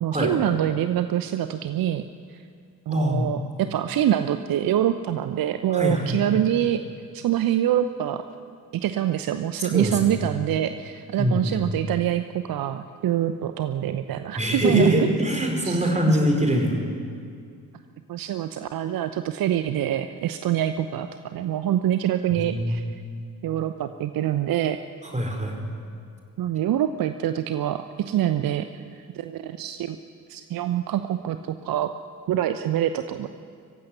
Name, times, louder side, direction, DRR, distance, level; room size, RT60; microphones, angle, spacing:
voice 1, 0.0-2.0 2.3-2.4 2.9-6.8 7.1-8.2 8.7-15.1 15.6-16.2 18.1-22.8 23.4-24.8 26.4-28.7 28.9-30.0 30.3-31.9 32.3-33.3, right 11 dB, 45° right, 10 dB, 0.9 m, -25 dB
voice 2, 2.9-3.3 5.7-6.4 9.6-10.2 11.2-11.6 14.4-16.8 22.3-22.9 25.0-25.6, equal, 15° right, 1 dB, 5.2 m, -24 dB
23.5 x 15.5 x 9.6 m, 2.2 s
figure-of-eight pair, 40°, 49 cm